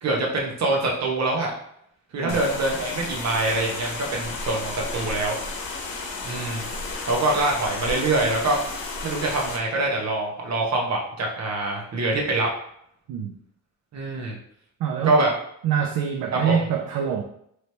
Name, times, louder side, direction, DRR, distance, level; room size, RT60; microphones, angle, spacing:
voice 1, 0.0-1.5 2.1-5.4 6.2-6.7 7.1-8.6 9.0-12.5 13.9-14.4 15.0-15.3 16.3-16.5, right 2 dB, 50° right, -1 dB, 0.8 m, -24 dB
sound 1, 2.3-9.6, left 3 dB, 85° left, 0.8 m, -33 dB
voice 2, 14.8-15.2 15.6-17.2, right 8 dB, 90° right, 2 dB, 0.5 m, -25 dB
3.1 x 2.9 x 3.1 m, 0.71 s
wide cardioid pair, 165°, 34 cm